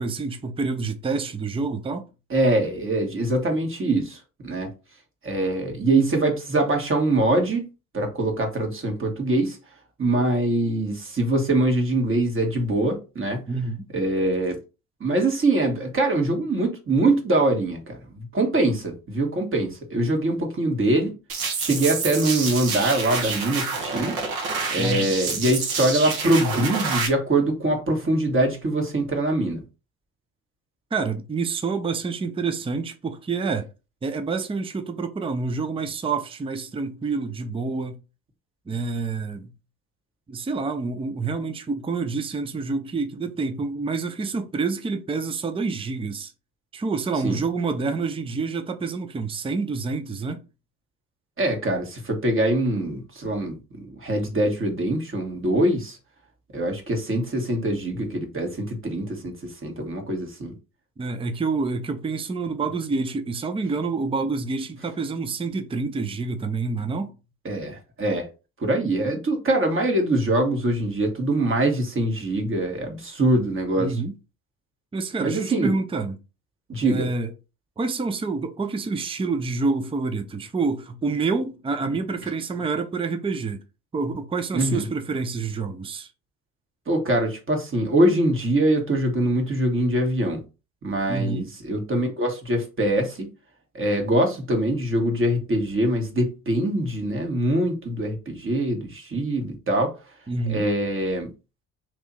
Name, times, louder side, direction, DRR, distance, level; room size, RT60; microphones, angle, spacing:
voice 1, 0.0-2.0 13.5-13.8 24.8-25.1 30.9-33.7 34.0-38.0 38.7-39.5 40.3-46.3 46.7-50.4 61.0-67.1 73.8-74.1 74.9-76.2 76.8-77.3 77.8-83.6 83.9-86.1 91.1-91.5 100.3-100.7, right 4 dB, 15° right, 0.6 m, -27 dB
voice 2, 2.3-4.7 5.2-7.6 7.9-9.6 10.0-13.4 13.9-14.6 15.0-21.1 21.6-24.2 24.7-29.6 47.2-47.4 51.4-56.0 56.5-60.5 67.4-68.3 68.6-73.9 75.2-75.7 76.7-77.1 84.5-84.8 86.9-90.4 90.8-93.3 93.7-99.9 100.5-101.3, right 1 dB, 30° right, 1.7 m, -23 dB
sound 1, 21.3-27.1, right 4 dB, 60° right, 1.4 m, -28 dB
3.1 x 3.0 x 4.1 m
hypercardioid pair, 65°, 42 cm